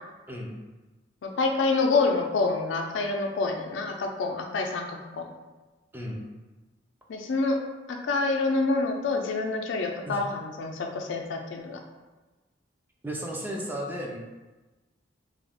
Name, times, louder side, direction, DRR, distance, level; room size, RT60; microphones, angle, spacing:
voice 1, 1.2-5.3 7.1-7.6 7.9-11.8, left 3 dB, 85° left, 3 dB, 0.4 m, -27 dB
voice 2, 13.0-14.2, equal, 10° right, -1 dB, 0.3 m, -34 dB
2.4 x 2.1 x 3.3 m, 1.2 s
head